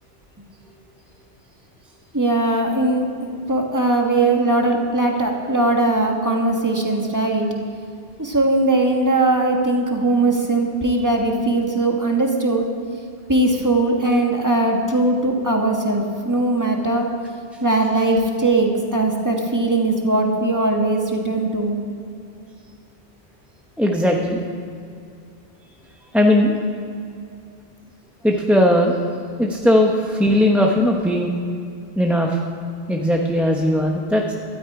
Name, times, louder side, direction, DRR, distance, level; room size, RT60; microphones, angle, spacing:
voice 1, 2.1-7.5 8.2-12.7 13.3-17.1 17.6-21.7, right 2 dB, 15° right, 1 dB, 1.6 m, -20 dB
voice 2, 23.8-24.4 26.1-26.5 28.2-29.0 29.4-31.3 32.0-32.4 32.9-34.3, left 1 dB, ahead, 0 dB, 0.9 m, -18 dB
17.5 x 12.5 x 4.9 m, 2.4 s
omnidirectional pair, 1.1 m